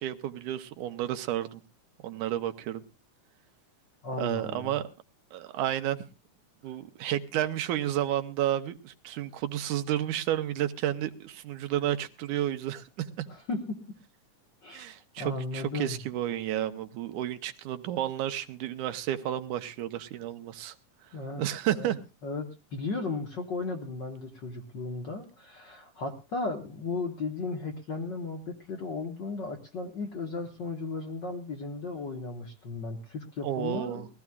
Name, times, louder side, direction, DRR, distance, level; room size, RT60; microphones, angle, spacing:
voice 1, 0.0-1.6 2.0-2.8 4.2-4.8 5.3-6.1 6.6-13.3 14.7-20.8 21.4-22.0 33.4-34.1, right 12 dB, 80° right, 2.3 m, -31 dB
voice 2, 4.0-4.7 13.3-13.8 14.6-14.9 15.2-16.0 21.1-21.4 21.7-21.9 22.2-34.1, left 3 dB, 50° left, 1.5 m, -35 dB
21.5 x 15.5 x 2.3 m
omnidirectional pair, 3.6 m